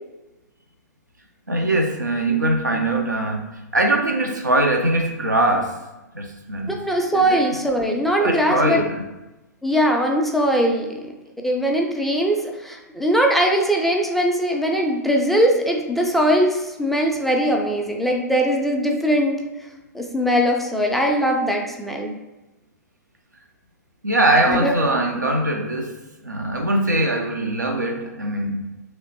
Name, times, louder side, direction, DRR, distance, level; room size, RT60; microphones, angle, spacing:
voice 1, 1.5-3.4 3.7-5.7 6.1-6.7 7.1-7.4 8.2-9.0 24.0-25.9 26.2-28.6, right 1 dB, 85° right, 2 dB, 0.5 m, -21 dB
voice 2, 6.7-8.9 9.6-11.1 11.4-19.4 19.9-22.2 24.5-24.8, equal, ahead, 0 dB, 0.3 m, -21 dB
3.0 x 3.0 x 2.8 m, 1.0 s
figure-of-eight pair, 110°, 9 cm